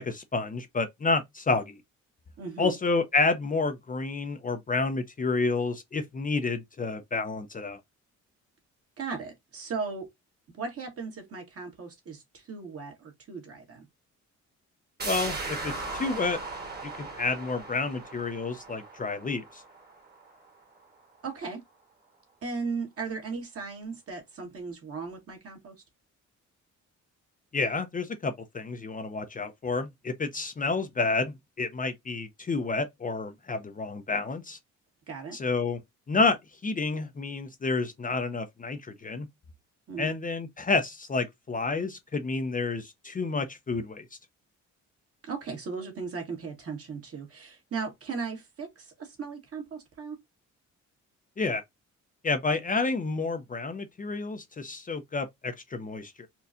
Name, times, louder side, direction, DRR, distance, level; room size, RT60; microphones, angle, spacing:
voice 1, 0.0-1.8 2.6-7.8 15.0-16.4 16.8-19.6 27.5-34.6 35.3-35.8 36.1-36.4 36.6-39.3 40.0-44.0 51.4-51.6 52.2-56.3, left 3 dB, 25° left, 0.6 m, -29 dB
voice 2, 2.4-2.8 9.0-10.1 10.5-13.9 21.2-21.6 22.4-25.8 35.1-35.4 39.9-40.2 45.2-50.2, right 5 dB, 50° right, 1.7 m, -37 dB
sound 1, 15.0-20.5 20.8-20.9, right 3 dB, 35° right, 1.6 m, -38 dB
4.2 x 2.3 x 2.5 m
cardioid pair, 90°, 30 cm